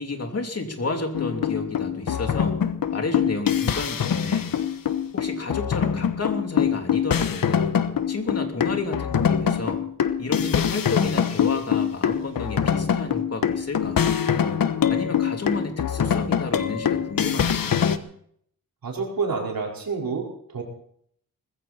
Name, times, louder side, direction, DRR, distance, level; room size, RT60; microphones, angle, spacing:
voice 1, 0.0-2.6 2.9-4.5 5.1-7.7 8.1-9.8 10.2-14.1 14.8-17.8, left 3 dB, 45° left, 4 dB, 3.2 m, -31 dB
sound 1, 1.1-18.0, left 8 dB, 75° left, 1.2 m, -24 dB
voice 2, 18.8-20.6, right 4 dB, 80° right, -1 dB, 4.8 m, -28 dB
20.0 x 16.0 x 4.4 m, 0.66 s
wide cardioid pair, 105°, 34 cm